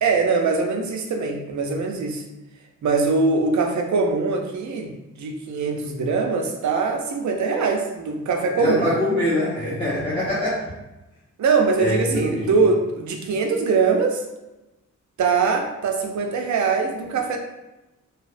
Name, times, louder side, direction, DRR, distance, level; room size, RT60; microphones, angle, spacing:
voice 1, 0.0-2.2 2.8-4.9 5.2-8.8 11.4-14.2 15.2-17.4, right 4 dB, 65° right, 3 dB, 0.4 m, -22 dB
voice 2, 8.6-10.7 11.8-12.6, left 1 dB, 15° left, -10 dB, 0.6 m, -24 dB
2.7 x 2.0 x 2.4 m, 1.0 s
wide cardioid pair, 150°, 32 cm